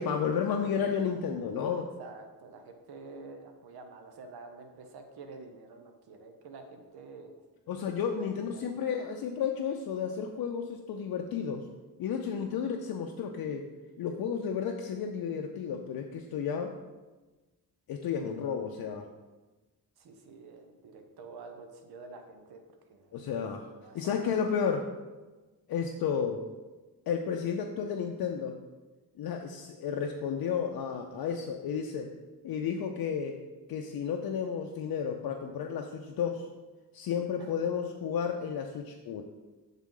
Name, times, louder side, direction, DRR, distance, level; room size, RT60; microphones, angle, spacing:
voice 1, 0.0-1.9 7.7-11.6 12.0-13.6 14.0-16.7 17.9-19.0 23.1-23.7 23.9-24.9 25.7-26.4 27.1-28.5 29.2-32.1 32.4-33.4 33.7-36.4 36.9-39.2, left 7 dB, 70° left, 2 dB, 0.5 m, -32 dB
voice 2, 2.0-7.4 8.2-8.5 20.0-22.6 22.9-23.2 23.8-24.1 24.4-24.5 37.4-37.5, right 3 dB, 85° right, 5 dB, 0.7 m, -48 dB
7.3 x 3.7 x 3.7 m, 1.2 s
wide cardioid pair, 160°, 37 cm